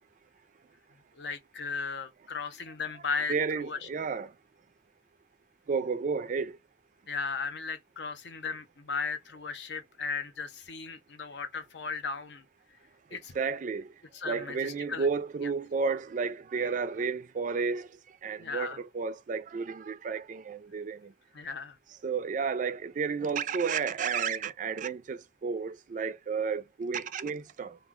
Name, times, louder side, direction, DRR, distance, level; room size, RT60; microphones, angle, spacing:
voice 1, 1.2-3.9 7.1-12.4 13.1-13.3 14.1-15.1 18.4-18.8 21.3-21.8, left 5 dB, 80° left, 0.7 m, -36 dB
voice 2, 3.3-4.3 5.7-6.6 13.1-13.9 14.3-17.9 18.2-21.1 22.0-27.8, right 5 dB, 45° right, 0.3 m, -32 dB
2.3 x 2.2 x 3.5 m
head